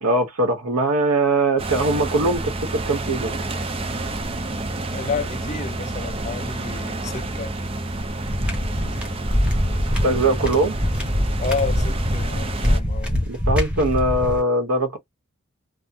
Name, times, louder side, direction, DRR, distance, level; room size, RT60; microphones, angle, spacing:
voice 1, 0.0-3.4 10.0-10.8 13.3-15.0, right 2 dB, 80° right, 1.0 m, -21 dB
sound 1, 1.6-12.8, right 2 dB, 25° right, 0.5 m, -29 dB
voice 2, 4.9-7.5 11.4-13.3, left 4 dB, 30° left, 0.6 m, -30 dB
sound 2, 8.3-14.4, equal, 5° right, 1.0 m, -23 dB
3.5 x 2.0 x 2.6 m
head